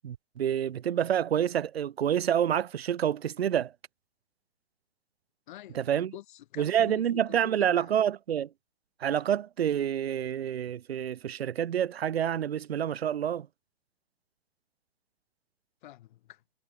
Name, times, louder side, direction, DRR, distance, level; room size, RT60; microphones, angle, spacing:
voice 1, 0.0-3.7 5.7-6.1 6.6-8.5 9.0-13.5, right 9 dB, 85° right, 0.7 m, -28 dB
voice 2, 5.5-7.9 15.8-16.4, left 14 dB, 50° left, 4.2 m, -48 dB
hypercardioid pair, 130°, 30 cm